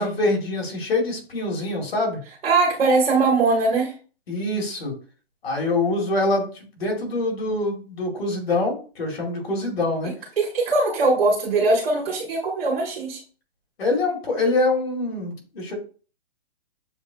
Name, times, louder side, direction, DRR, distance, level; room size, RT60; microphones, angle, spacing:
voice 1, 0.0-2.2 4.3-4.9 5.4-6.5 6.8-10.1 13.8-15.7, left 2 dB, 80° left, 0 dB, 2.3 m, -24 dB
voice 2, 2.4-3.9 10.0-13.2, right 3 dB, 70° right, -2 dB, 1.6 m, -21 dB
6.9 x 2.8 x 2.3 m, 0.38 s
hypercardioid pair, 165°, 30 cm